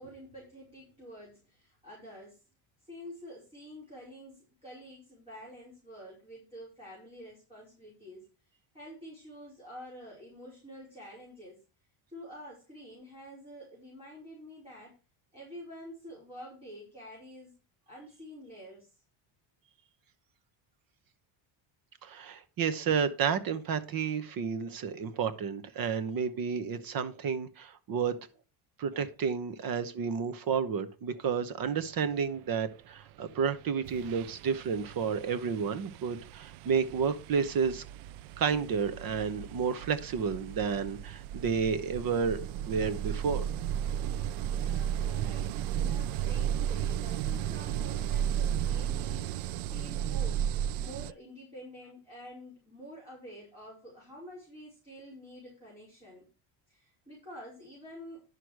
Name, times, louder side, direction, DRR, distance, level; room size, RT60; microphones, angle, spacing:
voice 1, 0.0-2.4 2.8-11.6 12.1-14.9 15.3-17.5 17.9-19.0 44.4-50.5 50.8-56.2 56.7-58.2, equal, 10° right, -6 dB, 4.9 m, -48 dB
voice 2, 22.0-28.2 28.8-37.8 38.4-43.5, right 6 dB, 45° right, 12 dB, 1.0 m, -31 dB
sound 1, 33.3-33.5 33.8-51.1, right 10 dB, 80° right, 0.6 m, -34 dB
11.0 x 6.4 x 4.8 m, 0.33 s
cardioid pair, 165°, 49 cm